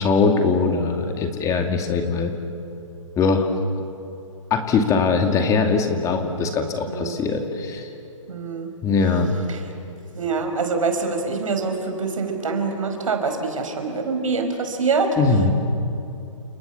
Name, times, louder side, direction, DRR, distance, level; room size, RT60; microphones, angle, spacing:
voice 1, 0.0-2.3 3.2-3.5 4.5-7.9 8.8-9.3 15.2-15.5, left 4 dB, 20° left, 4 dB, 2.4 m, -21 dB
voice 2, 6.9-7.2 8.3-8.7 9.5-9.6 10.1-15.2, right 4 dB, 80° right, 5 dB, 5.3 m, -25 dB
29.5 x 28.0 x 7.1 m, 2.7 s
hypercardioid pair, 135°, 17 cm